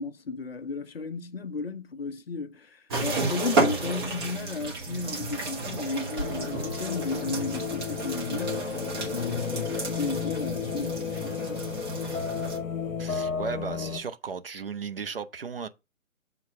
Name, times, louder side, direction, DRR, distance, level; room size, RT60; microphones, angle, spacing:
voice 1, 0.0-8.8 9.1-11.7, left 4 dB, 45° left, 0.6 m, -34 dB
sound 1, 2.9-12.6, right 3 dB, 20° right, 1.1 m, -32 dB
sound 2, 6.2-14.0, left 6 dB, 70° left, 0.9 m, -33 dB
voice 2, 13.0-15.7, right 5 dB, 45° right, 0.6 m, -35 dB
7.2 x 3.9 x 5.3 m
figure-of-eight pair, 145°, 41 cm